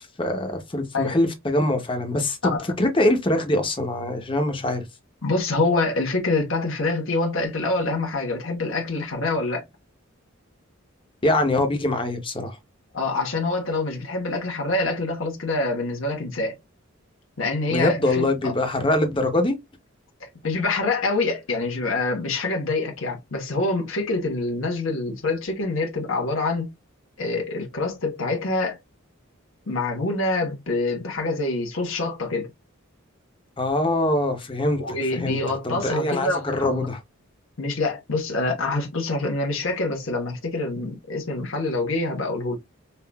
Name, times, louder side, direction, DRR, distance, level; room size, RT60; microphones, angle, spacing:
voice 1, 0.0-4.8 11.2-12.5 17.7-19.6 33.6-34.8 35.1-35.4 35.6-37.0, left 1 dB, 25° left, 0.8 m, -23 dB
voice 2, 5.2-9.7 12.9-16.6 17.4-18.5 20.2-26.7 27.2-28.8 29.7-32.5 34.8-36.8 37.6-42.6, left 2 dB, 70° left, 1.3 m, -26 dB
5.6 x 2.5 x 2.3 m
head